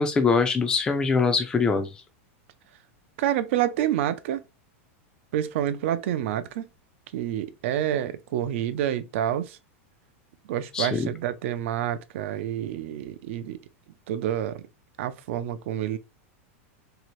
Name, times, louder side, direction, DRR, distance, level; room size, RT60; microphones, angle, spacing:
voice 1, 0.0-1.9 10.7-11.1, left 4 dB, 10° left, 0.3 m, -23 dB
voice 2, 3.2-4.4 5.3-6.6 7.1-9.6 10.5-13.6 14.1-14.6 15.0-16.0, right 11 dB, 60° right, 0.4 m, -28 dB
2.8 x 2.4 x 3.0 m
supercardioid pair, 160°, 7 cm